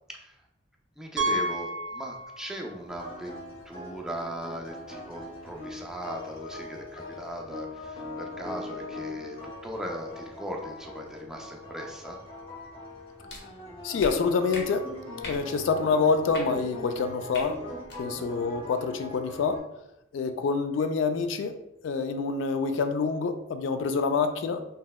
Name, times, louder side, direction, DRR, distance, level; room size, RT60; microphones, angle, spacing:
voice 1, 1.0-12.2 18.0-18.2, equal, 5° right, 0 dB, 0.3 m, -39 dB
Piano, 1.2-2.8 3.0-3.2 3.8-3.9 4.1-4.2 6.3-6.4, right 1 dB, 90° right, 0.5 m, -31 dB
sound 1, 2.9-19.6, left 1 dB, 30° left, 0.7 m, -41 dB
sound 2, 13.3-13.4 14.0-14.1 14.5-14.6 15.2-15.4 16.3-16.4 17.3-17.5 17.8-18.0, left 2 dB, 65° left, 0.8 m, -38 dB
voice 2, 13.8-14.9 15.2-17.6 18.0-19.6 20.1-21.6 21.8-24.7, left 4 dB, 85° left, 8 dB, 0.3 m, -27 dB
3.0 x 2.7 x 2.2 m, 0.87 s
head